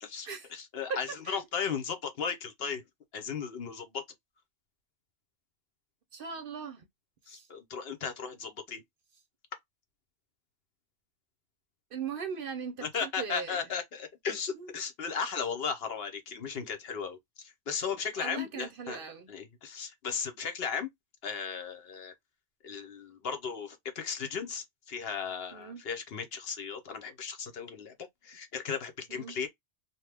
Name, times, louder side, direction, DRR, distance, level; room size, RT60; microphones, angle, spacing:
voice 1, 0.0-2.8 3.1-4.0 7.3-8.8 12.8-19.0 19.3-20.9 21.2-22.1 22.6-27.9 28.2-29.5, left 6 dB, 60° left, 0.9 m, -36 dB
voice 2, 1.1-1.4 6.1-6.8 7.3-7.5 11.9-13.6 14.5-14.7 18.2-19.3 25.5-25.8 29.1-29.4, right 6 dB, 60° right, 0.7 m, -39 dB
2.8 x 2.2 x 3.2 m
omnidirectional pair, 1.2 m